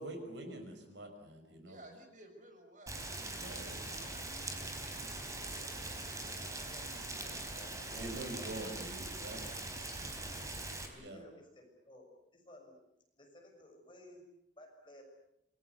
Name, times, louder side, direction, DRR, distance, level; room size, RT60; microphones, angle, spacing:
voice 1, 0.0-1.8 3.3-4.1 7.2-7.4 7.9-9.4 11.0-11.2, right 1 dB, 70° right, 6 dB, 6.0 m, -45 dB
voice 2, 1.7-4.5 5.2-6.6, right 1 dB, 45° right, 5 dB, 5.8 m, -58 dB
Rain, 2.9-10.9, right 2 dB, 15° right, 4.0 m, -42 dB
voice 3, 6.7-8.1 8.4-8.5 10.0-10.1 10.9-12.8 13.1-14.2 14.6-15.0, left 1 dB, 25° left, 2 dB, 6.7 m, -57 dB
27.5 x 22.0 x 8.2 m, 0.78 s
head